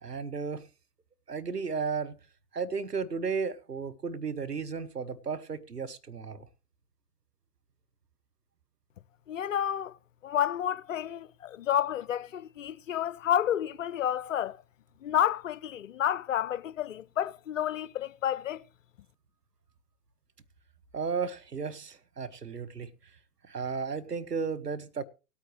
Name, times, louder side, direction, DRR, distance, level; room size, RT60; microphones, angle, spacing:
voice 1, 0.0-0.7 1.3-2.2 2.5-6.5 20.9-22.9 23.4-25.0, right 5 dB, 90° right, 1.0 m, -34 dB
voice 2, 9.3-9.9 10.2-14.6 15.0-18.6, left 10 dB, 55° left, 0.5 m, -30 dB
18.5 x 8.5 x 3.0 m
figure-of-eight pair, 120°, 47 cm